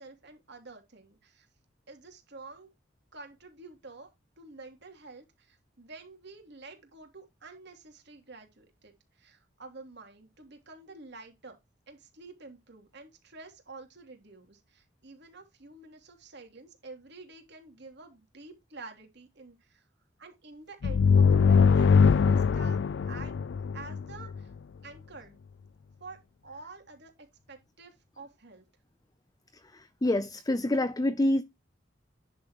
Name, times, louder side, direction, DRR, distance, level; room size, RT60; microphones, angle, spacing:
voice 1, 0.0-1.5 1.9-2.7 3.1-4.1 4.4-11.6 11.9-19.9 20.2-22.8 23.1-23.4 23.7-24.5 24.8-25.4 26.0-27.1 27.5-28.6, right 3 dB, 60° right, 3.1 m, -49 dB
sound 1, 20.8-24.4, left 5 dB, 65° left, 0.4 m, -22 dB
voice 2, 29.7-31.4, left 1 dB, 20° left, 0.6 m, -27 dB
10.0 x 7.0 x 3.1 m
head